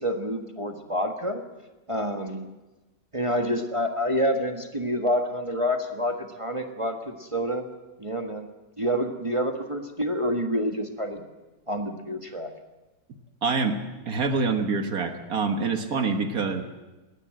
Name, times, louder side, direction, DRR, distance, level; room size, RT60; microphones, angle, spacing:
voice 1, 0.0-1.4 1.9-2.5 3.1-7.7 8.0-8.5 8.8-11.2 11.7-12.5, equal, 20° right, 5 dB, 1.3 m, -28 dB
voice 2, 13.4-13.8 14.1-16.6, right 4 dB, 65° right, 7 dB, 1.8 m, -26 dB
20.5 x 17.0 x 7.7 m, 1.1 s
omnidirectional pair, 1.7 m